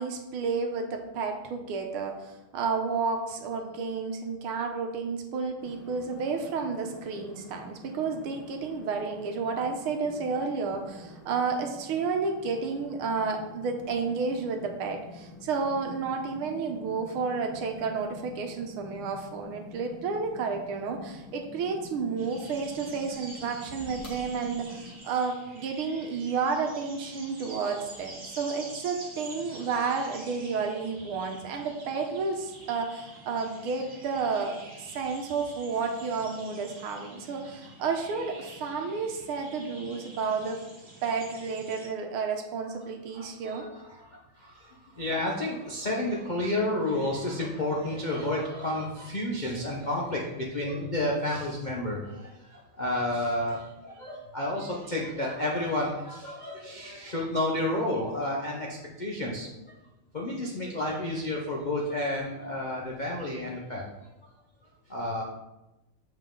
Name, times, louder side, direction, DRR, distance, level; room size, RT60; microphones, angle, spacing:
voice 1, 0.0-40.6 41.0-43.7, right 5 dB, 80° right, 4 dB, 1.7 m, -31 dB
sound 1, 5.6-25.0, left 1 dB, 60° left, 2.1 m, -48 dB
sound 2, 22.2-41.9, right 2 dB, 35° right, 1.8 m, -47 dB
voice 2, 43.1-59.8 60.1-63.8 64.9-65.2, left 1 dB, 75° left, -3 dB, 0.4 m, -31 dB
7.4 x 5.2 x 3.8 m, 0.98 s
omnidirectional pair, 2.4 m